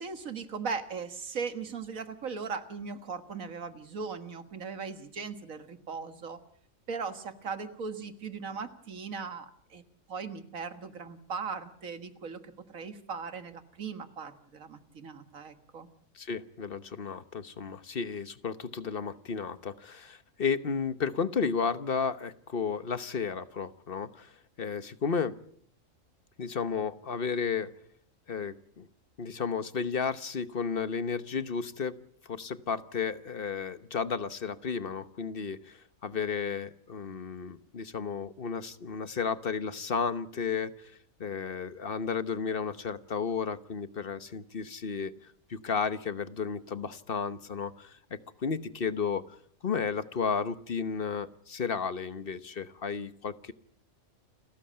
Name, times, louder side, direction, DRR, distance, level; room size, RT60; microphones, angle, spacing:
voice 1, 0.0-6.4 6.9-9.8 10.1-12.4 12.7-15.9, right 5 dB, 90° right, 9 dB, 2.0 m, -38 dB
voice 2, 16.1-24.3 24.6-25.3 26.4-27.7 28.3-28.9 29.2-31.9 32.2-40.9 41.2-45.1 45.5-49.2 49.6-53.5, left 6 dB, 45° left, 13 dB, 1.2 m, -33 dB
29.0 x 13.5 x 8.7 m, 0.63 s
omnidirectional pair, 1.4 m